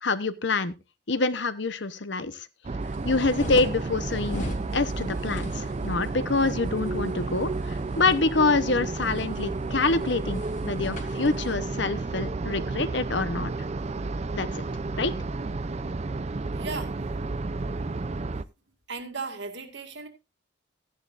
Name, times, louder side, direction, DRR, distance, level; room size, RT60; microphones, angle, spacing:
voice 1, 0.0-0.7 1.1-2.5 3.0-13.5 14.3-14.6 15.0-15.1, left 3 dB, 60° left, 0.9 m, -26 dB
sound 1, 2.6-18.4, right 3 dB, 35° right, 0.4 m, -31 dB
sound 2, 2.8-11.6, left 1 dB, 40° left, 2.8 m, -41 dB
voice 2, 16.5-17.0 18.9-20.1, right 4 dB, 60° right, 2.1 m, -36 dB
14.5 x 10.5 x 2.5 m
head